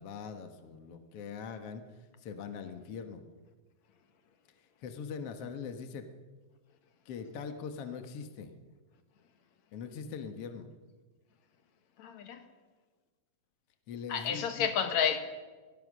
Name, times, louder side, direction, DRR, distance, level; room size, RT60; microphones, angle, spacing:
voice 1, 0.0-1.8 2.2-3.2 4.8-6.1 7.0-8.5 9.7-10.7 13.9-14.7, left 6 dB, 85° left, 7 dB, 1.3 m, -42 dB
voice 2, 12.0-12.4 14.1-15.2, left 8 dB, 60° left, 8 dB, 1.9 m, -30 dB
23.0 x 19.0 x 6.3 m, 1.4 s
omnidirectional pair, 5.0 m